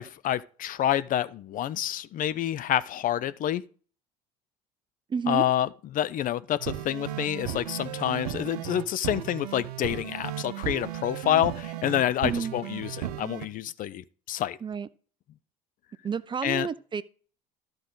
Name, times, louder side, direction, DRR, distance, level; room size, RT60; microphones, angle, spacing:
voice 1, 0.0-3.6 5.3-14.6 16.4-16.7, left 11 dB, 45° left, 0.5 m, -28 dB
voice 2, 5.1-5.4 12.2-12.5 14.6-14.9 16.0-17.0, right 6 dB, 25° right, 0.5 m, -30 dB
sound 1, 6.6-13.5, right 12 dB, 70° right, 0.7 m, -35 dB
13.0 x 4.8 x 3.9 m
figure-of-eight pair, 60°, 20 cm